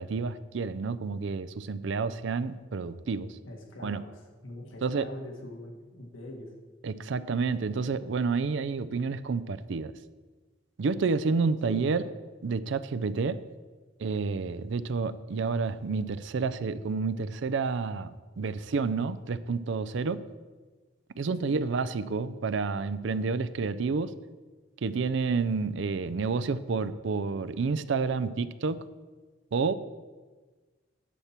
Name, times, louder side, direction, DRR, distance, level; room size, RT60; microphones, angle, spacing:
voice 1, 0.0-3.3 3.8-4.0 4.8-5.1 6.8-9.9 10.8-12.0 12.4-13.4 14.0-20.2 21.2-24.1 24.8-28.8 29.5-29.7, right 4 dB, 70° right, 14 dB, 0.4 m, -29 dB
voice 2, 3.4-6.5 11.6-12.1 21.4-21.7, left 1 dB, 90° left, 1 dB, 1.7 m, -43 dB
10.0 x 4.4 x 7.3 m, 1.3 s
head